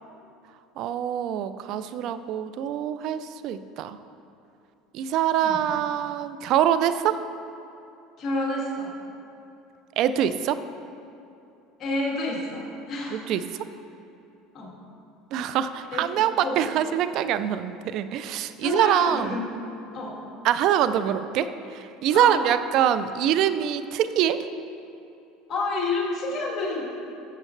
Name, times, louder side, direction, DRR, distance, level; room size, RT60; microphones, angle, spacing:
voice 1, 0.8-4.0 4.9-7.2 10.0-10.6 13.1-13.4 15.3-19.4 20.4-24.4, right 10 dB, 60° right, 12 dB, 0.4 m, -24 dB
voice 2, 8.2-8.9 11.8-13.3 14.5-14.7 15.9-16.1 16.4-16.6 18.6-19.5 19.9-20.2 22.1-22.4 25.5-26.8, left 2 dB, 40° left, -3 dB, 2.2 m, -29 dB
14.5 x 7.4 x 3.3 m, 2.8 s
supercardioid pair, 110°, 0 cm